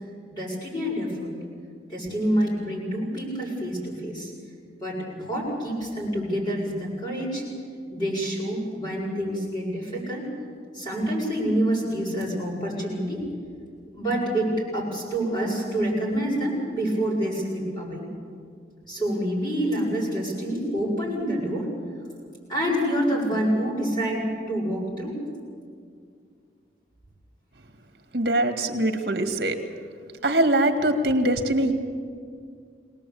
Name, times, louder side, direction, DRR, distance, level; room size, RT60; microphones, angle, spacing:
voice 1, 0.3-1.4 1.9-4.3 4.8-7.4 7.9-10.3 10.7-13.3 13.9-18.1 18.9-21.7 22.5-25.2, equal, 25° left, -4 dB, 7.3 m, -27 dB
voice 2, 28.1-29.6 30.2-31.7, right 1 dB, 60° right, 5 dB, 2.1 m, -22 dB
23.0 x 19.0 x 8.6 m, 2.2 s
head